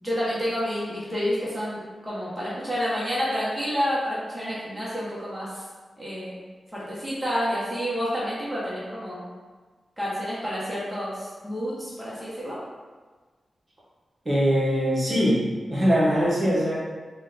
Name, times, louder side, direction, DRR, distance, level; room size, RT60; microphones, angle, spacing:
voice 1, 0.0-5.6 6.0-6.4 6.7-9.2 10.0-12.6, equal, 5° right, -9 dB, 0.8 m, -29 dB
voice 2, 14.2-15.4 15.7-16.8, equal, 30° right, -7 dB, 0.9 m, -22 dB
3.7 x 2.1 x 3.8 m, 1.4 s
wide cardioid pair, 135°, 0 cm